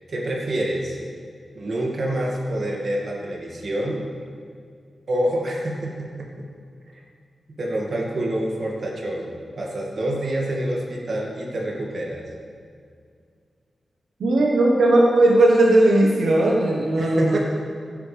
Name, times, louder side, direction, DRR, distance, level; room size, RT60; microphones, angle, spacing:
voice 1, 0.1-1.0 1.5-4.1 5.1-6.5 6.9-7.0 7.6-12.3 16.9-17.4, right 1 dB, 55° right, -2 dB, 2.1 m, -27 dB
voice 2, 14.2-17.4, right 1 dB, 90° right, -2 dB, 1.2 m, -17 dB
15.5 x 9.5 x 3.4 m, 2.2 s
wide cardioid pair, 120°, 0 cm